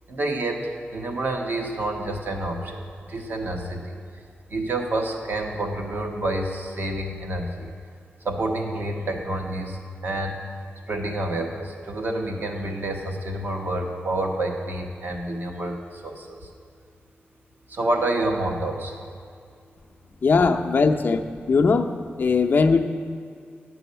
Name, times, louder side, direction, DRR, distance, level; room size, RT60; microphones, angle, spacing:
voice 1, 0.1-2.8 3.1-4.0 4.5-7.7 8.2-10.4 10.9-15.8 16.0-16.4 17.7-19.0, right 1 dB, 55° right, 2 dB, 1.2 m, -28 dB
voice 2, 20.2-21.2 21.5-21.9 22.2-22.8, left 4 dB, 50° left, 5 dB, 0.6 m, -19 dB
10.5 x 6.2 x 6.8 m, 2.3 s
wide cardioid pair, 140°, 4 cm